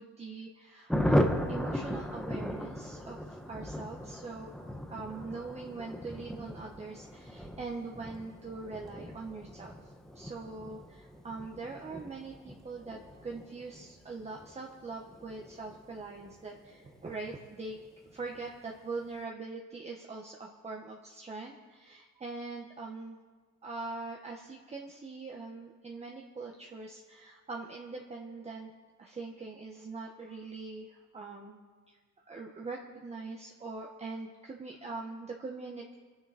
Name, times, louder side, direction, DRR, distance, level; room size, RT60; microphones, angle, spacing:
voice 1, 0.0-4.5 4.9-9.7 10.1-17.8 18.1-23.2 23.6-28.7 29.0-31.6 31.9-32.0 32.3-36.0, right 3 dB, 20° right, 0 dB, 1.3 m, -42 dB
Thunder, 0.9-17.0 17.3-17.4 17.7-17.8 18.1-18.5, equal, ahead, 1.0 m, -36 dB
26.0 x 9.7 x 4.3 m, 1.5 s
cardioid pair, 125°, 33 cm